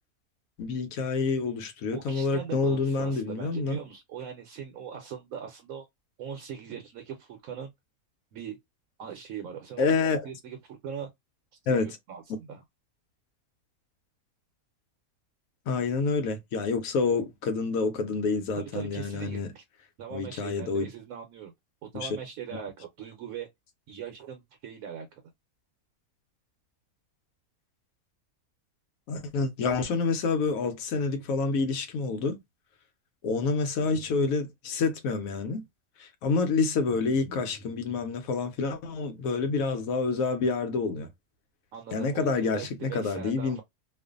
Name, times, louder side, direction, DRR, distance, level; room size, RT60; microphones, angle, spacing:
voice 1, 0.6-3.8 9.8-10.3 11.7-12.0 15.7-19.5 20.1-20.9 21.9-22.2 29.1-32.4 33.2-35.6 36.0-41.1 41.9-43.6, left 4 dB, 70° left, 1.0 m, -28 dB
voice 2, 1.9-5.9 6.2-7.7 8.3-8.6 9.0-9.9 10.2-11.1 11.8-12.6 18.6-19.6 20.0-21.5 21.8-23.5 23.9-25.2 41.7-43.6, right 8 dB, 70° right, 1.0 m, -40 dB
2.5 x 2.5 x 2.3 m
omnidirectional pair, 1.5 m